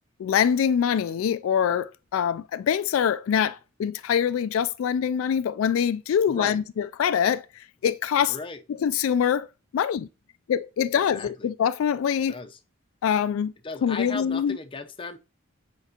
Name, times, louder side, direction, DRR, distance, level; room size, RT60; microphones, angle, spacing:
voice 1, 0.2-8.3 8.8-9.5 9.7-10.1 10.5-12.4 13.0-13.5 13.8-14.6, left 8 dB, 80° left, 0.3 m, -24 dB
voice 2, 6.3-6.6 8.3-8.6 11.1-11.5 12.3-12.6 13.6-15.2, left 3 dB, 25° left, 0.7 m, -36 dB
8.1 x 4.5 x 2.8 m
head